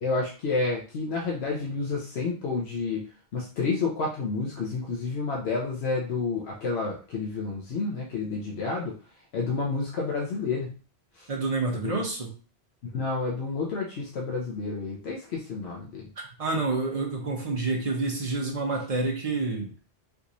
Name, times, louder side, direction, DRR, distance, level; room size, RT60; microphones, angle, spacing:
voice 1, 0.0-3.0 3.3-8.9 9.3-10.8 11.2-11.3 11.7-12.0 12.9-16.1, left 4 dB, 80° left, -2 dB, 0.9 m, -30 dB
voice 2, 11.3-12.3 16.4-19.7, right 3 dB, 40° right, 0 dB, 0.9 m, -28 dB
3.5 x 2.9 x 2.6 m, 0.37 s
omnidirectional pair, 1.1 m